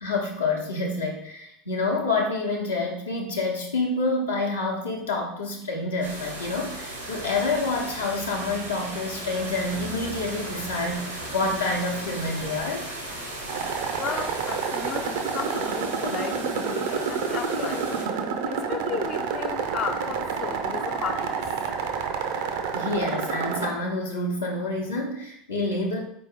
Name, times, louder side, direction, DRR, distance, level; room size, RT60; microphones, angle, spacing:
voice 1, 0.0-12.9 22.7-26.0, left 2 dB, 80° left, -3 dB, 0.8 m, -28 dB
sound 1, 6.0-18.0, right 1 dB, 90° right, 1.1 m, -36 dB
sound 2, 13.5-23.7, right 6 dB, 60° right, 0.6 m, -29 dB
voice 2, 14.0-18.1 18.5-21.7, left 6 dB, 40° left, 6 dB, 0.4 m, -34 dB
4.4 x 3.1 x 3.5 m, 0.75 s
figure-of-eight pair, 75°, 0 cm